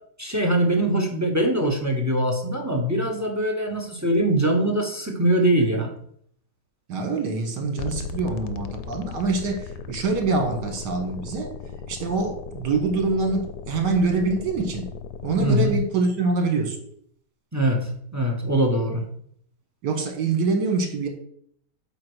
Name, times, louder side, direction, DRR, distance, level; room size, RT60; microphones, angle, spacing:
voice 1, 0.2-5.9 15.4-15.7 17.5-19.1, right 1 dB, 15° right, 3 dB, 0.6 m, -22 dB
voice 2, 6.9-11.5 11.9-14.9 15.2-16.8 19.8-21.1, right 3 dB, 70° right, 4 dB, 1.9 m, -25 dB
sound 1, 7.8-15.8, left 5 dB, 75° left, 1.1 m, -37 dB
8.1 x 2.8 x 6.1 m, 0.64 s
omnidirectional pair, 2.0 m